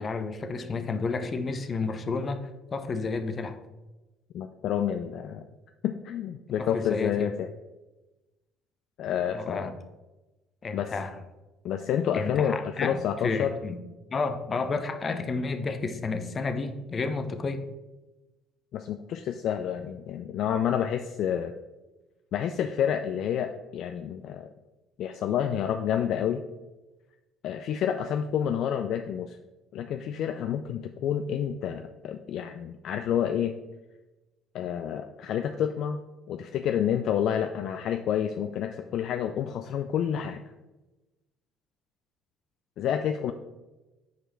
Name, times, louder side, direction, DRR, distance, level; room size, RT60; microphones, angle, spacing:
voice 1, 0.0-2.4 2.7-3.6 6.6-7.3 9.3-9.8 10.6-11.2 12.1-13.8 14.1-17.6, left 4 dB, 35° left, 9 dB, 0.7 m, -31 dB
voice 2, 4.3-5.5 5.8-7.5 9.0-9.7 10.7-10.9 11.6-13.6 18.7-21.5 22.3-24.5 25.0-26.4 27.4-29.4 29.7-33.6 34.5-36.0 36.3-40.4 42.8-43.3, left 9 dB, 55° left, 7 dB, 0.3 m, -29 dB
6.7 x 4.9 x 4.4 m, 1.1 s
hypercardioid pair, 55°, 0 cm